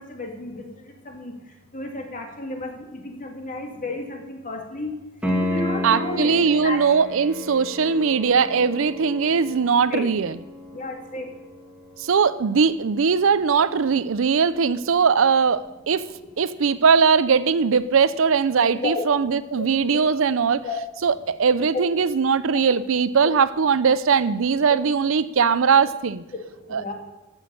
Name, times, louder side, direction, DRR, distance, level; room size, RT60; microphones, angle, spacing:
voice 1, 0.0-1.3 1.7-4.9 5.4-6.8 9.9-10.1 10.7-11.3 18.7-19.0 19.5-20.1 20.6-20.8 21.7-22.0 23.2-23.3 24.7-24.8 26.7-26.9, left 2 dB, 40° left, 2 dB, 2.1 m, -32 dB
Piano, 5.2-15.9 19.2-19.3, left 1 dB, 5° right, 1.8 m, -34 dB
voice 2, 5.8-10.3 12.0-16.1 16.4-20.6 21.0-26.2 26.7-26.8, right 5 dB, 65° right, 16 dB, 0.5 m, -20 dB
14.0 x 6.3 x 7.0 m, 1.0 s
head